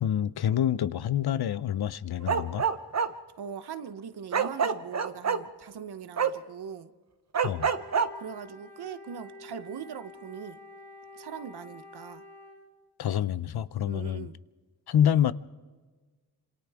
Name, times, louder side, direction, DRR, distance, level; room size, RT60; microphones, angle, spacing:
voice 1, 0.0-2.6 7.4-7.7 13.0-14.3 14.9-15.3, left 10 dB, 75° left, 0.7 m, -27 dB
Bark, 2.2-3.1 4.3-5.4 6.2-6.3 7.3-8.1, right 6 dB, 45° right, 0.9 m, -26 dB
voice 2, 3.4-6.9 8.1-10.6 11.1-12.2 13.9-14.4, right 7 dB, 85° right, 1.0 m, -41 dB
Wind instrument woodwind instrument, 7.5-12.7, left 2 dB, 35° left, 6.6 m, -48 dB
27.0 x 27.0 x 3.6 m
wide cardioid pair, 105°, 38 cm